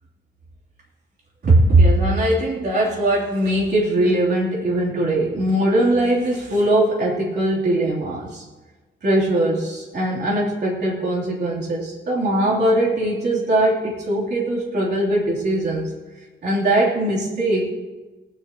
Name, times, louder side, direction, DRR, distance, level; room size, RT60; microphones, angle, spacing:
voice 1, 1.4-8.4 9.0-15.9 16.4-17.7, right 1 dB, 55° right, -7 dB, 3.4 m, -20 dB
19.5 x 12.0 x 3.0 m, 1.2 s
wide cardioid pair, 145°, 20 cm